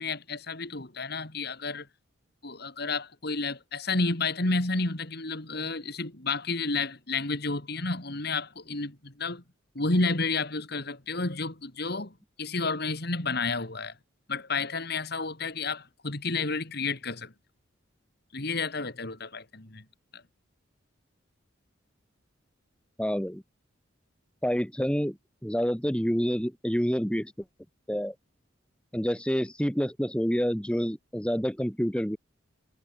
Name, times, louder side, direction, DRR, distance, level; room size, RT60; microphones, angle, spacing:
voice 1, 0.0-1.9 2.4-9.4 9.7-13.9 14.3-17.3 18.3-19.8 20.1-20.2, left 3 dB, 55° left, 2.6 m, -31 dB
voice 2, 23.0-23.4 24.4-25.2 25.4-27.3 27.9-28.1 28.9-32.2, equal, 5° left, 2.5 m, -28 dB
head